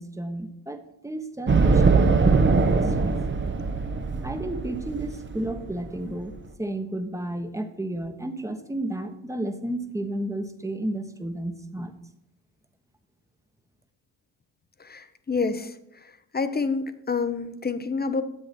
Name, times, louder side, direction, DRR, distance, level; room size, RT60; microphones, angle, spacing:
voice 1, 0.0-3.2 4.2-11.9, right 1 dB, 5° right, 7 dB, 1.2 m, -32 dB
sound 1, 1.5-6.4, right 4 dB, 25° right, 1.0 m, -22 dB
voice 2, 14.8-15.7 16.3-18.2, left 4 dB, 20° left, 11 dB, 0.9 m, -28 dB
10.0 x 7.6 x 4.4 m, 0.79 s
supercardioid pair, 60°, 44 cm